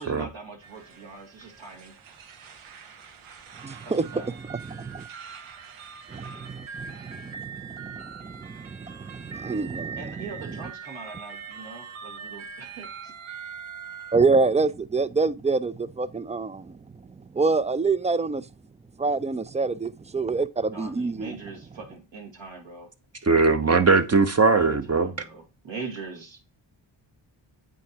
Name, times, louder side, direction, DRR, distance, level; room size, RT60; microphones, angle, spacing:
voice 1, 0.0-1.9 3.8-4.3 9.9-13.1 20.7-22.9 24.6-26.4, right 4 dB, 65° right, 2.2 m, -41 dB
sound 1, 0.6-14.2, right 6 dB, 85° right, 1.0 m, -42 dB
voice 2, 3.6-4.1 4.5-5.1 6.1-10.0 14.1-16.8 17.3-18.4 19.0-21.3, right 4 dB, 15° right, 0.3 m, -26 dB
voice 3, 23.3-25.1, right 4 dB, 30° right, 0.8 m, -20 dB
8.3 x 4.5 x 2.8 m
cardioid pair, 60°, 48 cm